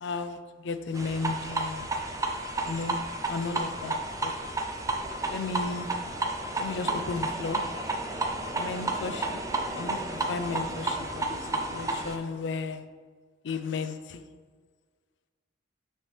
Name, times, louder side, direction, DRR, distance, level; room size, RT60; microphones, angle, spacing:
voice 1, 0.0-1.9 2.7-3.0 3.3-4.3 5.2-6.0 6.6-7.6 8.5-9.4 9.8-12.8 13.4-14.3, left 4 dB, 65° left, 10 dB, 0.4 m, -34 dB
sound 1, 0.9-12.2, right 2 dB, 15° right, 0.5 m, -32 dB
8.7 x 4.3 x 3.3 m, 1.5 s
head